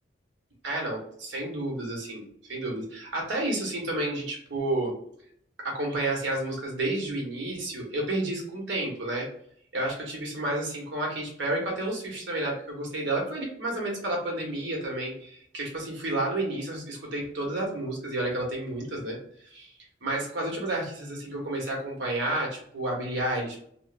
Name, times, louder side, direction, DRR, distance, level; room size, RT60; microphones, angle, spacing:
voice 1, 0.6-5.0 5.6-9.3 9.7-19.2 19.4-19.7 20.0-23.6, right 1 dB, 80° right, -1 dB, 1.2 m, -31 dB
3.0 x 2.0 x 3.2 m, 0.65 s
head